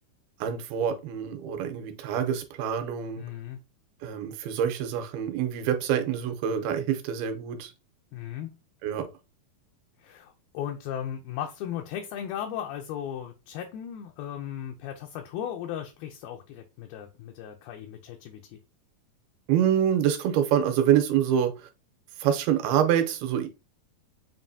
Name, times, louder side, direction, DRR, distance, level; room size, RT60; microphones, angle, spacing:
voice 1, 0.4-3.2 4.0-7.7 8.8-9.1 19.5-21.7 22.2-23.5, right 9 dB, 80° right, 2.6 m, -26 dB
voice 2, 3.2-3.6 8.1-8.5 10.0-18.6, left 10 dB, 80° left, 2.3 m, -36 dB
7.1 x 2.6 x 2.6 m
omnidirectional pair, 4.5 m